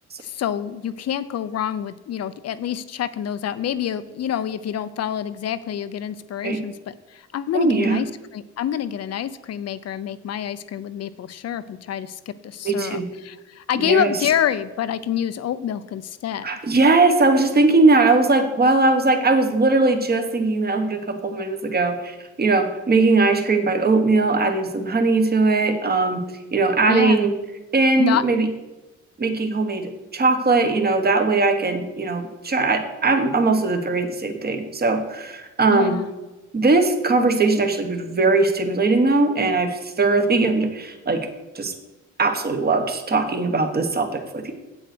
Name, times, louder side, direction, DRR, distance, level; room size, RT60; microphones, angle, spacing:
voice 1, 0.2-16.5 26.9-27.3 28.0-28.2 35.7-36.1, left 9 dB, 55° left, 14 dB, 0.7 m, -27 dB
voice 2, 7.5-8.0 12.6-13.0 13.8-14.1 16.4-26.2 26.5-27.3 27.7-28.5 29.2-36.0 36.5-41.3 41.5-41.7 42.2-44.5, right 3 dB, 30° right, 6 dB, 1.4 m, -20 dB
8.0 x 7.7 x 6.1 m, 1.1 s
cardioid pair, 90°, 30 cm